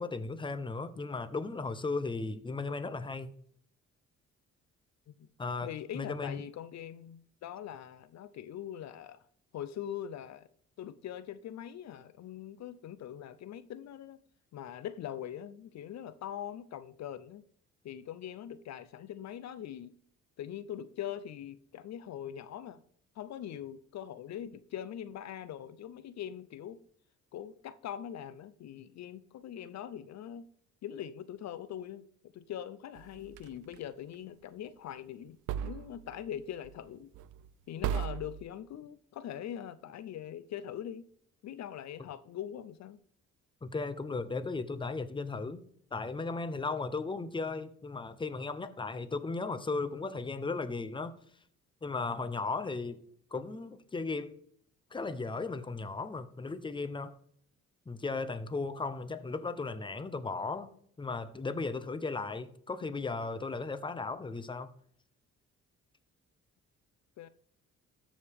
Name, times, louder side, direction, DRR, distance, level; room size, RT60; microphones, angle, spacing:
voice 1, 0.0-3.3 5.4-5.7 5.9-6.4 43.6-45.6 45.9-51.1 51.8-53.0 53.3-54.4 54.9-57.2 57.9-60.7 61.0-64.7, left 3 dB, 15° left, 0.8 m, -36 dB
voice 2, 5.6-9.2 9.5-10.5 10.8-14.2 14.5-17.4 17.8-19.9 20.4-22.8 23.2-26.8 27.3-30.5 30.8-35.4 35.6-37.1 37.7-41.1 41.4-43.0 67.2-67.3, left 10 dB, 60° left, 0.6 m, -42 dB
sound 1, 33.0-33.8 35.5-36.3 36.6-36.9 37.1-37.5 37.8-38.4, right 9 dB, 90° right, 0.5 m, -36 dB
13.5 x 5.0 x 3.6 m
cardioid pair, 90°, 30 cm